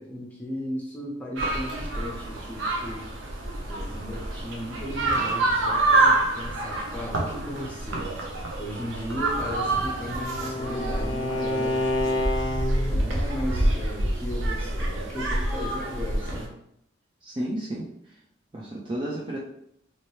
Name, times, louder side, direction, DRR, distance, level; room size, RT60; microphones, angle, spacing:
voice 1, 0.0-3.0 3.7-8.1 8.6-12.3 12.8-16.5, equal, 10° left, -4 dB, 0.7 m, -36 dB
sound 1, 1.4-16.5, right 2 dB, 75° right, 0.7 m, -27 dB
Bowed string instrument, 9.4-13.0, left 2 dB, 75° left, 0.4 m, -29 dB
voice 2, 17.2-17.9 18.5-19.4, right 1 dB, 25° right, -4 dB, 0.4 m, -32 dB
3.1 x 2.9 x 3.0 m, 0.75 s
head